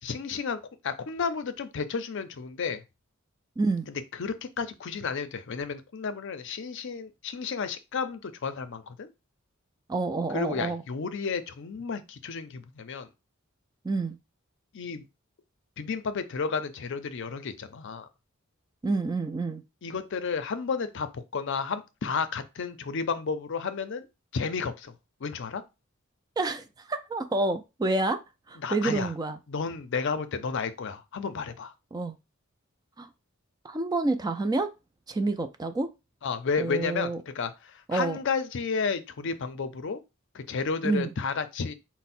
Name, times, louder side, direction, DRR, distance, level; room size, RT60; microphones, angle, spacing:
voice 1, 0.0-2.8 3.9-9.1 10.3-13.1 14.7-15.1 15.8-18.1 19.8-24.1 24.3-24.9 25.2-25.6 28.6-29.1 29.5-31.7 36.2-40.0 40.3-41.7, left 5 dB, 60° left, 0.5 m, -32 dB
voice 2, 3.6-3.9 9.9-10.8 13.8-14.2 18.8-19.6 26.4-28.2 28.5-29.4 31.9-32.2 33.0-33.1 33.6-34.7 35.1-35.9 36.6-37.2 37.9-38.2 40.8-41.1, right 2 dB, 20° right, 0.3 m, -28 dB
4.5 x 2.1 x 4.2 m
head